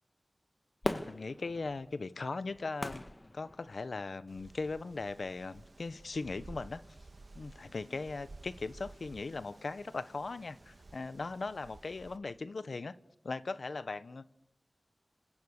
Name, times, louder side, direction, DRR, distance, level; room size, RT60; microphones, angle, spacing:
voice 1, 0.8-3.0 3.3-6.8 7.3-12.9 13.2-14.2, left 3 dB, 75° left, 14 dB, 1.2 m, -39 dB
Fireworks, 0.8-4.2 4.7-4.8, left 1 dB, 30° left, 1.8 m, -40 dB
Wind, 4.3-12.2, right 2 dB, 60° right, 2.0 m, -54 dB
28.5 x 27.5 x 6.8 m, 0.71 s
wide cardioid pair, 45°, 0 cm